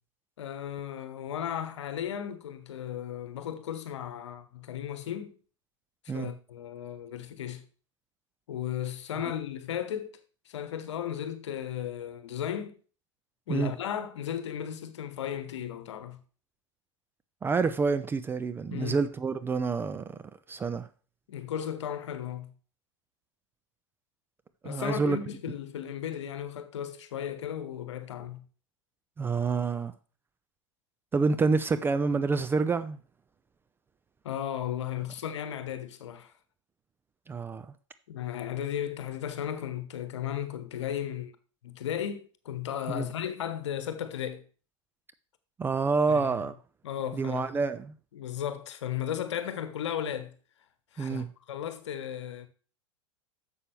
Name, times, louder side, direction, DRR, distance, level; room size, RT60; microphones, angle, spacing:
voice 1, 0.4-5.3 6.1-7.6 8.5-10.1 10.4-12.8 13.5-16.2 18.7-19.0 21.3-22.5 24.6-28.4 34.2-36.3 38.1-41.3 41.6-44.4 46.1-46.3 46.8-47.5 48.1-50.3 50.9-52.5, left 10 dB, 60° left, 1.1 m, -35 dB
voice 2, 17.4-20.1 20.5-20.9 24.6-25.2 29.2-29.9 31.1-33.0 37.3-37.7 42.9-43.1 45.6-46.5 47.1-47.9 51.0-51.3, right 4 dB, 15° right, 0.4 m, -28 dB
11.0 x 7.1 x 3.3 m
figure-of-eight pair, 90°, 17 cm